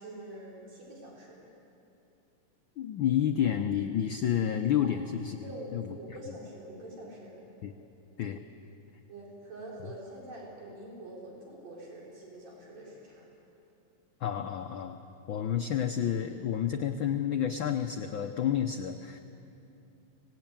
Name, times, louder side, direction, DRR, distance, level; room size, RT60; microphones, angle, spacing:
voice 1, 0.0-1.4 4.8-5.0 5.4-7.4 9.1-13.3, right 1 dB, 65° right, -4 dB, 5.4 m, -45 dB
voice 2, 2.8-5.4 5.7-6.0 6.3-6.4 7.6-7.7 8.2-8.4 14.2-15.0 15.3-19.2, left 9 dB, 80° left, 6 dB, 1.1 m, -30 dB
24.5 x 19.5 x 8.9 m, 2.8 s
omnidirectional pair, 3.3 m